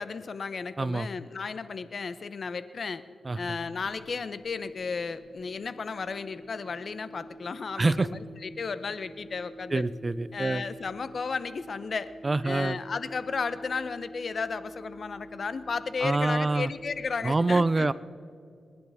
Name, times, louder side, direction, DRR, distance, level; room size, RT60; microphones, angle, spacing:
voice 1, 0.0-3.0 3.3-9.8 10.3-12.1 12.4-17.9, left 5 dB, 55° left, 13 dB, 0.7 m, -34 dB
voice 2, 0.8-1.1 3.2-3.4 7.8-8.1 9.7-10.6 12.2-12.8 16.0-16.7 17.2-17.9, right 3 dB, 30° right, 17 dB, 0.4 m, -25 dB
sound 1, 3.3-17.4, right 1 dB, 15° left, 1.7 m, -48 dB
30.0 x 10.5 x 3.5 m, 2.4 s
cardioid pair, 85°, 0 cm